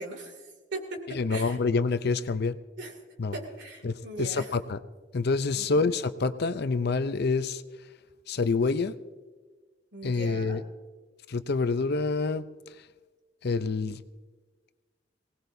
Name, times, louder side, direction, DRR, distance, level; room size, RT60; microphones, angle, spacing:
voice 1, 0.0-1.6 2.8-2.9 3.3-4.5 5.5-5.8 9.9-10.6, right 2 dB, 65° right, 3 dB, 2.6 m, -39 dB
voice 2, 1.2-2.5 3.2-3.3 3.8-4.8 5.1-7.6 8.3-8.9 10.0-10.6 11.3-12.5 13.4-14.0, left 4 dB, 60° left, 12 dB, 0.6 m, -27 dB
23.5 x 18.5 x 2.7 m, 1.4 s
head